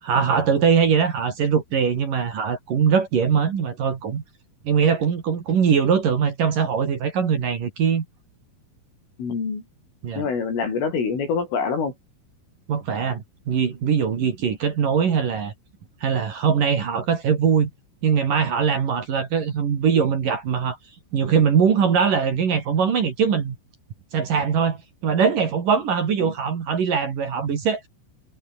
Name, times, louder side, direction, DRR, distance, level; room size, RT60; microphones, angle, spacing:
voice 1, 0.0-4.2 4.6-8.1 10.0-10.3 12.7-15.5 16.0-17.7 18.0-20.8 21.1-23.6 24.1-27.9, right 6 dB, 50° right, 3.9 m, -21 dB
voice 2, 9.2-9.6 10.2-11.9 26.2-26.3, left 5 dB, 80° left, 9.7 m, -25 dB
omnidirectional pair, 5.7 m